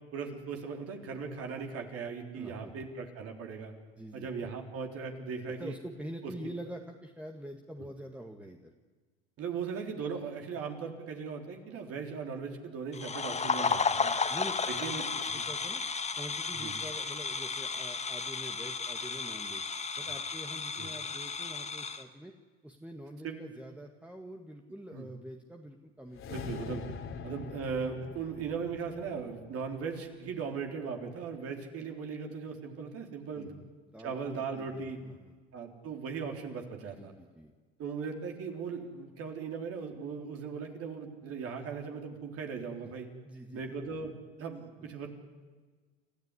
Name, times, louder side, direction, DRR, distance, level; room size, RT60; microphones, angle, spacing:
voice 1, 0.1-3.7 4.1-5.8 9.4-14.1 14.7-15.4 16.6-16.8 20.0-20.1 20.8-20.9 23.2-23.3 24.9-25.1 26.3-26.9 27.2-33.5 34.0-35.0 35.5-37.1 37.8-43.1 43.5-44.1 44.4-45.1, right 5 dB, 50° right, 3 dB, 3.7 m, -38 dB
voice 2, 2.3-2.9 4.0-4.3 5.6-8.7 13.9-15.8 16.2-19.6 20.0-22.3 22.6-26.5 27.1-27.2 33.3-35.3 37.0-37.5 42.8-42.9 43.2-43.8, equal, 5° right, 3 dB, 1.9 m, -46 dB
sound 1, 12.9-22.0, left 5 dB, 20° left, 2.0 m, -33 dB
sound 2, 26.1-30.5, left 6 dB, 45° left, 2.9 m, -44 dB
29.5 x 14.0 x 9.9 m, 1.4 s
hypercardioid pair, 85°, 31 cm